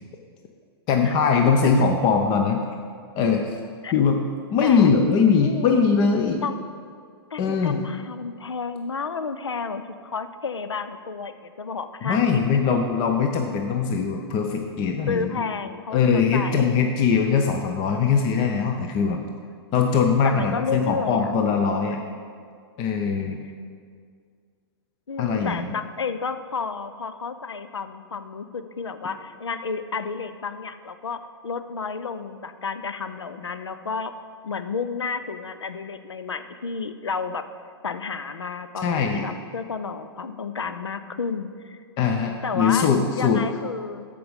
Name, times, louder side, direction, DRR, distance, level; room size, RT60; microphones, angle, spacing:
voice 1, 0.9-2.6 3.2-3.5 3.9-4.2 4.5-6.4 7.4-7.8 12.0-15.3 15.9-19.2 19.7-22.0 22.8-23.4 25.2-25.8 38.8-39.3 42.0-43.4, left 5 dB, 35° left, 4 dB, 0.7 m, -21 dB
voice 2, 4.6-4.9 5.4-5.8 6.4-6.6 7.3-12.2 15.1-16.8 20.2-21.3 25.1-34.1 34.4-37.5 37.8-41.8 42.4-42.9 43.2-44.0, left 5 dB, 85° left, 11 dB, 0.5 m, -31 dB
13.5 x 5.1 x 5.1 m, 2.1 s
hypercardioid pair, 115°, 14 cm